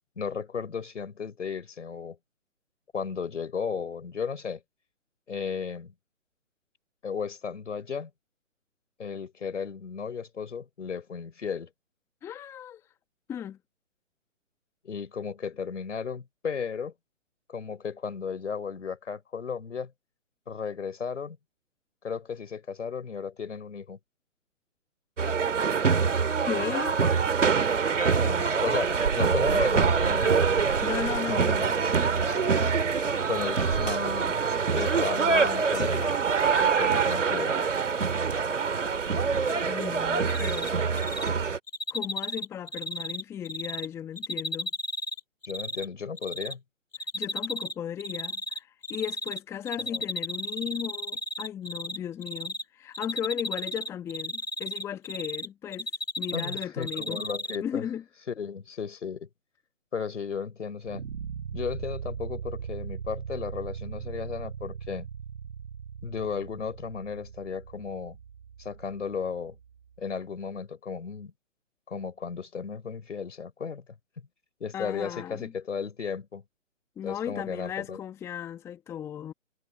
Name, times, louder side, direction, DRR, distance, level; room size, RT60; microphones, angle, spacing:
voice 1, 0.2-2.2 2.9-4.6 5.3-5.9 7.0-8.1 9.0-11.7 14.8-16.9 17.5-19.9 20.5-21.4 22.0-24.0 28.2-30.6 31.3-31.7 33.3-34.3 34.7-36.1 36.6-37.6 45.5-46.6 49.9-50.0 56.3-57.8 58.3-59.3 59.9-61.1 61.5-65.1 66.0-68.2 68.6-69.6 70.0-71.3 71.9-73.8 74.6-76.4 77.0-78.0, left 6 dB, 65° left, 3.9 m, -34 dB
voice 2, 12.2-12.8 13.3-13.6 26.5-27.0 30.6-31.5 31.8-31.9 39.7-40.8 41.9-44.7 47.1-55.9 56.2-57.2 57.6-58.0 74.7-75.5 77.0-79.3, left 9 dB, 5° left, 1.1 m, -36 dB
sound 1, 25.2-41.6, right 5 dB, 65° right, 2.2 m, -25 dB
Cricket, 40.3-40.7 41.0-41.3 41.7-43.9 44.2-45.8 46.2-46.5 46.9-47.7 48.0-49.4 49.7-52.0 52.2-52.6 52.9-55.5 55.7-57.6, equal, 80° left, 3.3 m, -33 dB
sound 2, 60.8-69.9, right 7 dB, 50° right, 2.2 m, -39 dB
figure-of-eight pair, 140°, 39 cm